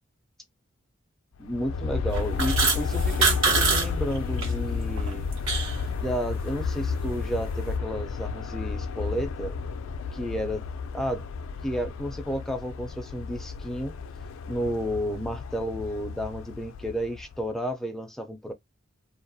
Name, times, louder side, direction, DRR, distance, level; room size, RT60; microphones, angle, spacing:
Aircraft, 1.4-17.4, left 5 dB, 80° left, 0.3 m, -32 dB
voice 1, 1.4-5.3 5.9-9.6 10.1-10.6 10.9-11.2 11.6-14.0 14.5-18.5, equal, ahead, 0.3 m, -32 dB
sound 1, 2.1-3.9 4.1-4.5 4.9-5.8, right 4 dB, 75° right, 1.1 m, -24 dB
2.3 x 2.1 x 2.5 m
head